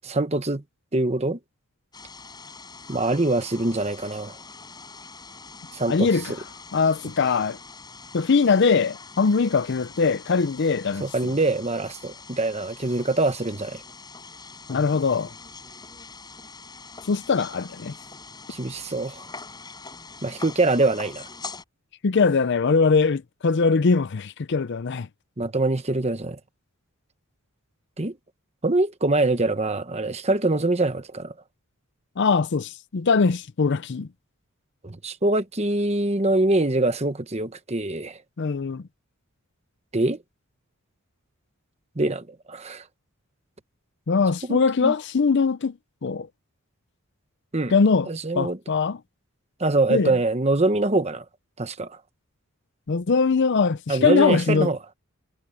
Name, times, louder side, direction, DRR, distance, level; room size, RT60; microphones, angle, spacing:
voice 1, 0.0-0.6 0.9-1.4 2.9-4.3 5.7-6.1 11.0-13.8 18.5-19.2 20.2-21.3 25.4-26.4 28.0-28.1 28.6-31.3 34.8-38.2 39.9-40.2 42.0-42.8 44.5-44.9 47.5-47.7 48.1-48.6 49.6-51.2 51.6-52.0 53.9-54.8, right 2 dB, 30° right, 1.1 m, -24 dB
sound 1, 1.9-21.6, left 4 dB, 20° left, 5.0 m, -43 dB
voice 2, 5.9-6.3 6.7-7.6 8.1-11.0 14.7-15.3 17.1-17.9 22.0-25.1 32.2-34.1 38.4-38.8 44.1-45.7 46.0-46.3 47.7-48.1 48.4-49.0 49.9-50.2 52.9-54.7, left 4 dB, 55° left, 0.5 m, -21 dB
head